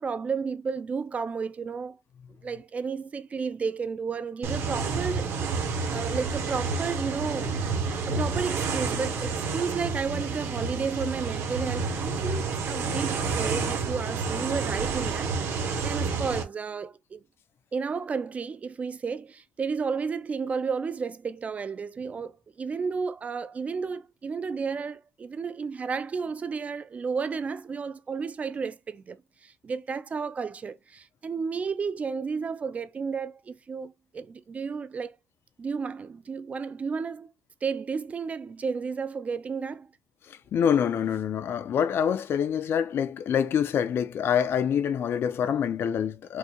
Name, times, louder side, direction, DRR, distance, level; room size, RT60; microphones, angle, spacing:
voice 1, 0.0-2.0 2.4-5.6 5.9-7.6 8.1-17.2 17.7-29.2 29.4-35.1 35.6-37.3 37.6-39.9, right 5 dB, 30° right, 0.3 m, -32 dB
sound 1, 4.4-16.4, right 4 dB, 60° right, 0.9 m, -29 dB
voice 2, 40.5-46.4, left 8 dB, 50° left, 0.5 m, -26 dB
4.6 x 2.1 x 3.0 m
cardioid pair, 140°, 5 cm